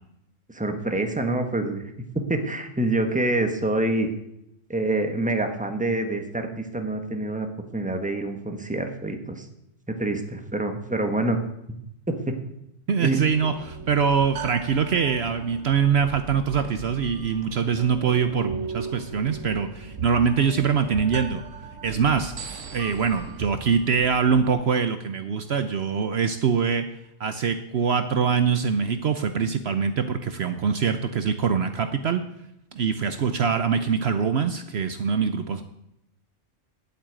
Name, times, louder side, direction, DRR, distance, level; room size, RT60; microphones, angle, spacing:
voice 1, 0.5-1.8 2.1-4.1 4.7-9.5 9.9-11.4 11.7-11.8 12.1-12.4 13.0-13.5, right 2 dB, 5° right, 6 dB, 1.3 m, -26 dB
voice 2, 12.9-21.4 21.8-22.3 22.7-26.9 27.2-32.2 32.7-35.6, right 6 dB, 60° right, 9 dB, 1.0 m, -23 dB
sound 1, 13.3-24.5, right 5 dB, 80° right, 1.5 m, -38 dB
9.6 x 8.7 x 8.9 m, 0.80 s
omnidirectional pair, 1.3 m